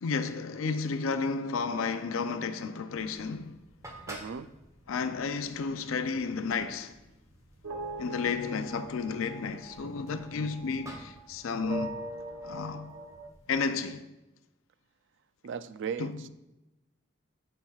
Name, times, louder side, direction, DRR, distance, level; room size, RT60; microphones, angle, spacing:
voice 1, 0.0-3.5 4.9-6.9 8.0-11.9 12.4-12.9 13.5-14.1 16.0-16.2, left 5 dB, 80° left, 0.5 m, -32 dB
sound 1, 2.9-13.6, right 1 dB, 15° right, 1.0 m, -52 dB
voice 2, 4.1-4.5 15.4-16.3, right 6 dB, 65° right, 0.3 m, -37 dB
sound 2, 7.6-11.3 11.6-13.3, right 2 dB, 85° right, 0.9 m, -41 dB
10.5 x 5.9 x 2.4 m
head